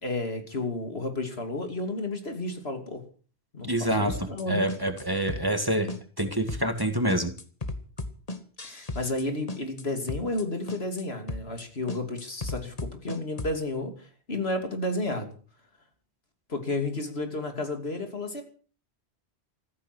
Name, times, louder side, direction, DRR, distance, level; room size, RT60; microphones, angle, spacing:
voice 1, 0.0-3.0 3.5-4.6 8.6-15.3 16.5-18.4, left 2 dB, 75° left, 6 dB, 3.2 m, -32 dB
voice 2, 3.6-5.9 6.2-7.3, right 1 dB, 20° right, 7 dB, 1.9 m, -27 dB
sound 1, 4.1-4.4 4.7-5.0 5.3-5.6 5.9-6.2 6.5-6.8 7.1-9.2 9.5-9.8 10.1-10.4 10.7-11.0 11.3-11.6 11.9-13.6, left 2 dB, 35° left, 1.5 m, -35 dB
15.0 x 14.5 x 6.2 m, 0.41 s
omnidirectional pair, 1.1 m